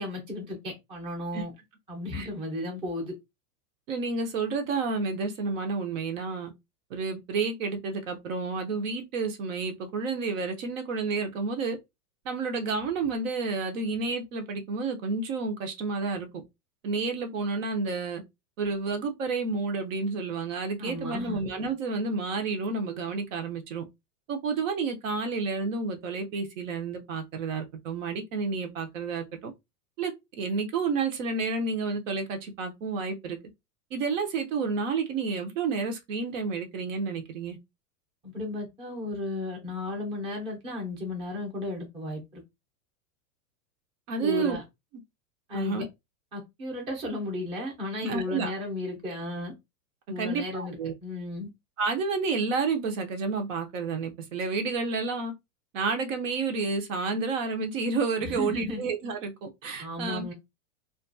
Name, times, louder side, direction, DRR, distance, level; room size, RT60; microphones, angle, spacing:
voice 1, 0.0-1.5 1.9-3.1 20.8-21.4 38.2-42.4 44.2-44.6 45.5-45.8 46.3-49.5 50.1-51.5 58.2-58.8 59.8-60.3, left 2 dB, 10° right, 0.6 m, -34 dB
voice 2, 3.9-6.5 6.9-11.8 12.2-16.3 16.8-18.2 18.6-23.8 24.3-29.5 30.0-33.4 33.9-37.6 44.1-44.6 45.5-45.9 48.0-48.5 50.2-50.9 51.8-55.3 55.7-60.3, right 4 dB, 50° right, 0.6 m, -30 dB
2.5 x 2.3 x 2.5 m
supercardioid pair, 150°, 49 cm